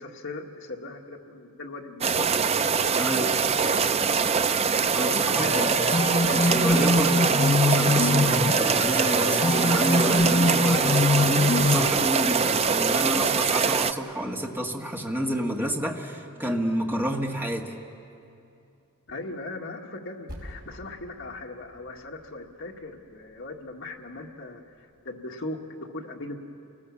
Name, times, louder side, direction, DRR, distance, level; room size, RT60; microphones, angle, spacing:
voice 1, 0.0-2.9 5.0-6.0 19.1-26.4, left 2 dB, 60° left, 1 dB, 1.9 m, -39 dB
sound 1, 2.0-13.9, right 6 dB, 30° right, 0.5 m, -23 dB
voice 2, 3.0-3.4 4.9-5.7 6.2-17.7, equal, 10° right, 1 dB, 1.6 m, -29 dB
sound 2, 5.3-11.9, left 2 dB, 30° left, 0.7 m, -24 dB
Percussion, 20.3-25.1, equal, 45° right, 5.0 m, -48 dB
29.0 x 19.0 x 7.3 m, 2.6 s
head